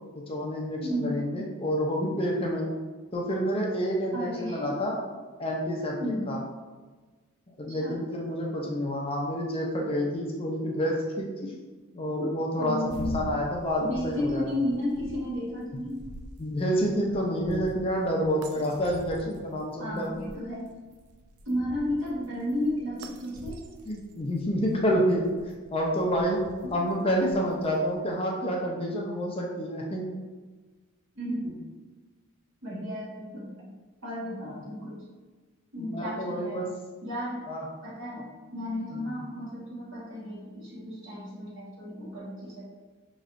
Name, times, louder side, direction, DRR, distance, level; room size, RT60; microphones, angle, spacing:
voice 1, 0.1-2.7 3.1-5.0 5.4-6.0 6.3-6.4 7.6-11.5 11.9-14.4 16.4-20.1 23.9-25.3 25.7-26.4 26.7-30.1 34.4-34.6 35.8-36.7 37.5-37.6 38.9-39.0, equal, 25° left, -1 dB, 0.5 m, -28 dB
voice 2, 0.8-1.2 4.1-4.7 6.0-6.3 7.7-8.0 12.1-12.3 12.6-13.2 13.8-16.0 19.8-20.7 21.4-23.6 26.6-26.8 31.1-31.5 32.6-33.7 34.0-35.0 35.7-36.7 37.0-37.5 37.8-42.6, left 1 dB, 60° right, -6 dB, 1.5 m, -33 dB
sound 1, 12.8-28.0, right 2 dB, 90° right, 0.4 m, -45 dB
5.4 x 3.1 x 2.5 m, 1.3 s
head